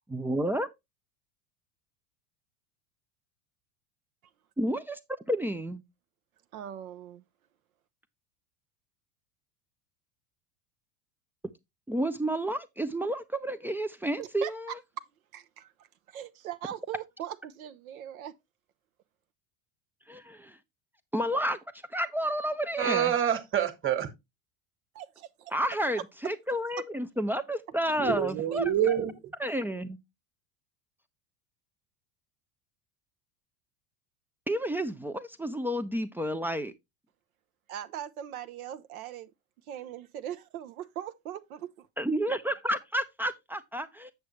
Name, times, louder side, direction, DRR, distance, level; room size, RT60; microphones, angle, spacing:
voice 1, 0.1-0.7 4.6-5.0 5.3-5.8 11.9-14.7 20.1-20.6 21.1-21.6 21.9-23.1 25.5-28.6 29.4-30.0 34.5-36.7 42.0-44.1, right 1 dB, 5° right, 0.3 m, -30 dB
voice 2, 6.5-7.2 14.2-14.5 15.0-15.1 15.3-18.3 24.9-25.5 28.5-28.6 37.7-39.3 39.7-41.9, right 10 dB, 70° right, 0.7 m, -40 dB
voice 3, 22.8-24.1 28.0-29.1, right 9 dB, 30° right, 1.5 m, -27 dB
8.0 x 6.5 x 3.1 m
hypercardioid pair, 80°, 44 cm